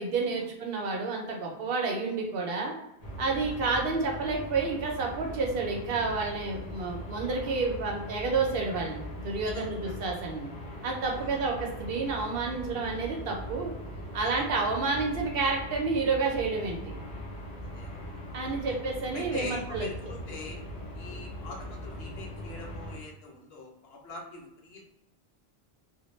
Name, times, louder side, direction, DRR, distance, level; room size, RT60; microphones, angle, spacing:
voice 1, 0.0-2.7 3.2-10.5 10.8-13.7 14.1-16.9 18.3-19.9, right 4 dB, 70° right, 0 dB, 0.8 m, -30 dB
sound 1, 3.0-23.0, equal, 50° left, 0.7 m, -40 dB
voice 2, 11.1-11.4 14.1-14.3 17.6-18.0 18.4-18.8 19.1-20.6 20.9-24.9, left 3 dB, 75° left, 0 dB, 0.8 m, -44 dB
2.2 x 2.0 x 3.0 m, 0.87 s
omnidirectional pair, 1.1 m